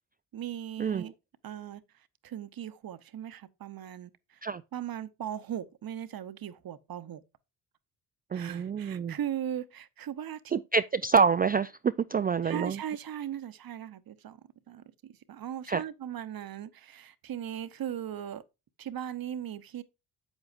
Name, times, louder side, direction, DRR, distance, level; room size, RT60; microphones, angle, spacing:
voice 1, 0.3-1.1 1.4-1.8 2.2-4.4 4.7-7.2 8.3-10.4 12.4-14.4 14.7-18.4 18.8-19.8, right 10 dB, 50° right, 0.9 m, -38 dB
voice 2, 8.3-9.2 10.5-12.8 15.7-15.8, right 5 dB, 20° right, 0.3 m, -27 dB
8.1 x 8.1 x 2.5 m
supercardioid pair, 50°, 45 cm